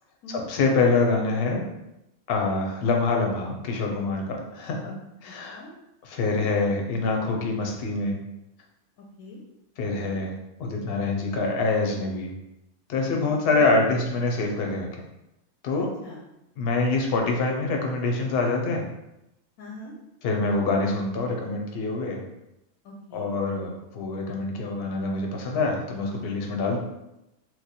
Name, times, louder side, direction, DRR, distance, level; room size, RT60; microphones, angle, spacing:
voice 1, 0.3-1.7 2.3-5.0 5.2-5.6 6.0-8.2 9.8-10.3 10.6-12.3 12.9-14.9 15.6-15.9 16.6-18.8 20.2-22.2 23.1-26.8, left 3 dB, 55° left, 1 dB, 0.7 m, -25 dB
voice 2, 5.3-5.7 6.2-6.5 9.0-9.4 9.9-10.2 13.5-13.7 15.7-16.2 19.6-19.9 22.8-23.3, left 2 dB, 80° left, -1 dB, 1.0 m, -43 dB
3.1 x 2.1 x 4.2 m, 0.89 s
omnidirectional pair, 1.5 m